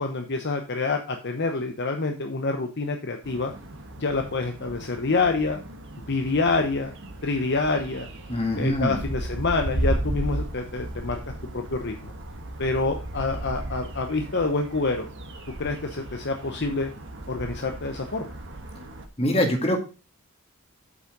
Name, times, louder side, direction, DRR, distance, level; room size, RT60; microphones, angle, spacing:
voice 1, 0.0-3.5 4.0-5.6 6.1-6.9 7.2-8.1 8.6-11.2 11.5-12.1 12.6-15.1 15.6-16.9 17.3-18.3, left 3 dB, 50° left, 4 dB, 0.9 m, -27 dB
sound 1, 3.2-19.1, right 1 dB, 55° right, 1.3 m, -35 dB
voice 2, 8.3-9.0 19.2-19.8, left 1 dB, 25° left, 3 dB, 2.2 m, -23 dB
8.3 x 5.7 x 5.2 m, 0.32 s
head